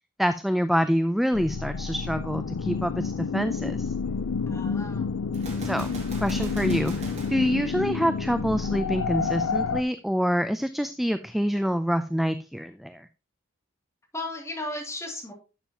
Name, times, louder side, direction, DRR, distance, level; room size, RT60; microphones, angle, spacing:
voice 1, 0.2-3.9 5.6-5.9 6.2-13.1, equal, ahead, 10 dB, 0.3 m, -26 dB
sound 1, 1.3-9.8, left 5 dB, 85° left, 0.4 m, -29 dB
voice 2, 4.5-5.3 14.1-15.3, left 1 dB, 15° left, -1 dB, 2.5 m, -35 dB
Gunshot gunfire, 5.3-8.4, right 1 dB, 35° right, 2.5 m, -40 dB
11.5 x 7.2 x 2.9 m, 0.30 s
head